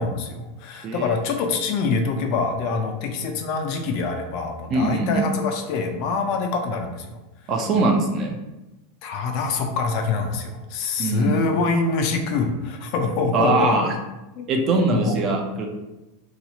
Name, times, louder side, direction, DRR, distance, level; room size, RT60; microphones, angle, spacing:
voice 1, 0.0-7.2 9.0-13.8 14.4-14.5 14.9-15.2, left 4 dB, 40° left, 4 dB, 0.4 m, -25 dB
voice 2, 4.7-5.2 7.5-8.4 11.0-11.4 13.3-13.9 14.5-15.7, right 3 dB, 25° right, 2 dB, 0.4 m, -22 dB
2.9 x 2.3 x 4.0 m, 1.0 s
supercardioid pair, 175°, 0 cm